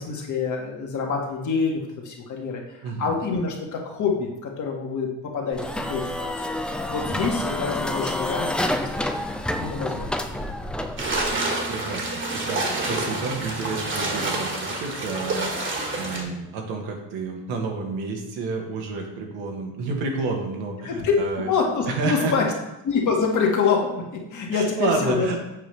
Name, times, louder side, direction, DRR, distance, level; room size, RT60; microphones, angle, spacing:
voice 1, 0.0-5.1 5.3-5.6 5.9-9.1 9.6-10.1 10.4-10.5 20.8-21.2 21.5-22.4 22.8-25.4, left 5 dB, 50° left, 0 dB, 1.7 m, -26 dB
voice 2, 2.8-3.2 11.3-12.0 12.3-15.7 15.9-21.5 21.9-22.3 24.5-25.4, right 3 dB, 70° right, 2 dB, 1.6 m, -30 dB
sound 1, 5.5-11.3, left 1 dB, 5° left, 0.5 m, -28 dB
sound 2, 11.0-16.2, right 2 dB, 30° right, 1.7 m, -28 dB
7.6 x 4.9 x 3.4 m, 0.95 s
supercardioid pair, 85°, 38 cm